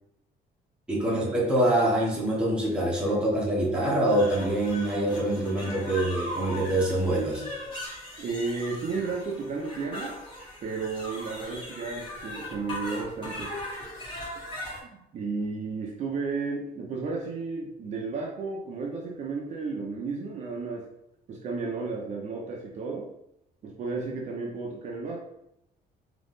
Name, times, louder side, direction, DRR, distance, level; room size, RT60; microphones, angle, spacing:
voice 1, 0.9-7.4, right 1 dB, 5° right, -5 dB, 1.0 m, -25 dB
sound 1, 4.1-14.8, left 1 dB, 30° left, 1.5 m, -39 dB
voice 2, 8.2-10.1 10.6-13.5 14.9-20.9 21.3-23.1 23.6-25.2, right 4 dB, 45° right, -2 dB, 0.7 m, -33 dB
3.9 x 3.0 x 3.6 m, 0.80 s
cardioid pair, 180°, 17 cm